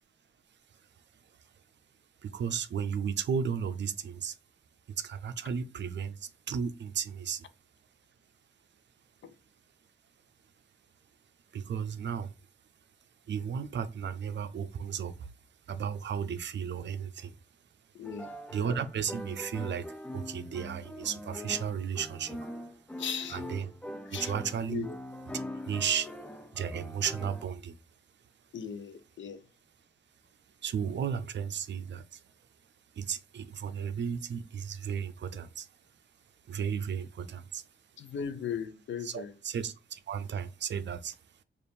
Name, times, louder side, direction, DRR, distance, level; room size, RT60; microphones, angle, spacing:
voice 1, 2.2-4.4 4.9-7.5 11.5-12.3 13.3-15.3 15.7-17.4 18.5-19.9 20.1-22.4 23.3-23.7 24.1-24.9 25.3-26.1 26.5-27.8 30.6-32.2 33.0-35.7 36.5-37.6 39.0-41.2, right 7 dB, 65° right, 0.4 m, -34 dB
voice 2, 17.9-18.3 23.0-23.4 24.0-24.3 24.7-25.0 28.5-29.4 38.0-39.3, left 7 dB, 70° left, 0.5 m, -37 dB
sound 1, 18.0-27.5, left 1 dB, 5° left, 0.3 m, -42 dB
3.4 x 2.5 x 4.2 m
cardioid pair, 90°, 20 cm